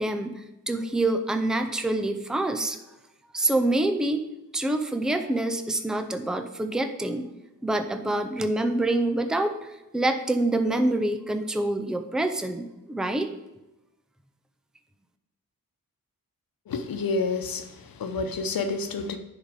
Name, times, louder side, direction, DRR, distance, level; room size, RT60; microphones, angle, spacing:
voice 1, 0.0-2.8 3.3-4.2 4.5-7.3 7.6-13.3, right 2 dB, ahead, 7 dB, 0.5 m, -26 dB
voice 2, 16.7-19.2, left 4 dB, 85° left, 7 dB, 0.9 m, -29 dB
10.0 x 4.1 x 5.0 m, 0.95 s
wide cardioid pair, 160°, 34 cm